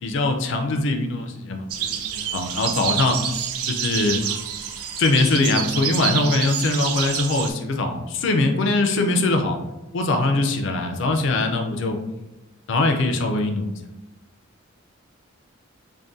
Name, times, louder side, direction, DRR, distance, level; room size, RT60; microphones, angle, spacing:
voice 1, 0.0-3.2 3.7-4.2 5.0-9.6 9.9-12.0 12.7-13.7, left 2 dB, 55° left, 4 dB, 0.4 m, -22 dB
sound 1, 1.7-7.5, right 8 dB, 85° right, 0.4 m, -28 dB
3.5 x 2.2 x 2.5 m, 0.97 s
head